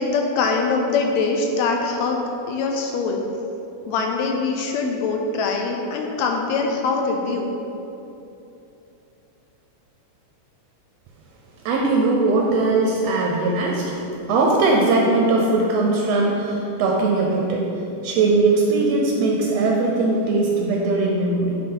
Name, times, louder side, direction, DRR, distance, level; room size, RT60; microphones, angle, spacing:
voice 1, 0.0-2.2 2.5-3.2 3.9-7.5, left 4 dB, 80° left, 2 dB, 1.8 m, -23 dB
voice 2, 11.6-14.0 14.3-17.6 18.0-21.6, right 3 dB, 75° right, -1 dB, 1.6 m, -20 dB
8.5 x 4.1 x 3.7 m, 2.9 s
omnidirectional pair, 3.4 m